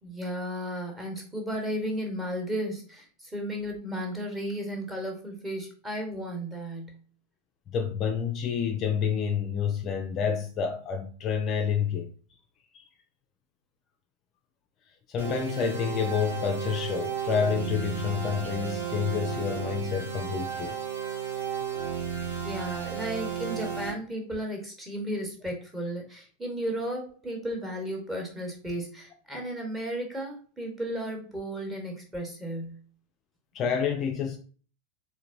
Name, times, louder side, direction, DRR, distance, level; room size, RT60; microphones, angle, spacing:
voice 1, 0.0-7.0 22.4-32.8, equal, 10° right, 1.0 m, -34 dB
voice 2, 7.7-12.1 12.7-12.8 15.1-20.8 33.5-34.4, left 7 dB, 30° left, 0.4 m, -28 dB
sound 1, 15.2-23.9, right 7 dB, 60° right, 1.4 m, -33 dB
3.8 x 2.5 x 2.6 m
figure-of-eight pair, 90°, 0 cm